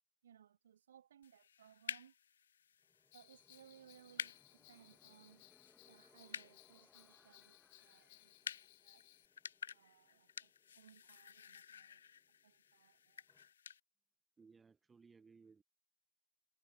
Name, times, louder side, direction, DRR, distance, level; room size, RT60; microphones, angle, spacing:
voice 1, 0.2-2.1 3.1-5.4 5.9-9.1 9.7-12.0 12.4-13.2, right 9 dB, 65° right, 2.2 m, -65 dB
sound 1, 1.2-13.8, left 8 dB, 65° left, 0.4 m, -52 dB
sound 2, 2.8-13.5, left 2 dB, 5° left, 1.8 m, -74 dB
Bell, 3.1-9.3, left 24 dB, 50° left, 1.0 m, -65 dB
voice 2, 14.4-15.6, right 5 dB, 15° right, 0.8 m, -63 dB
figure-of-eight pair, 90°, 0 cm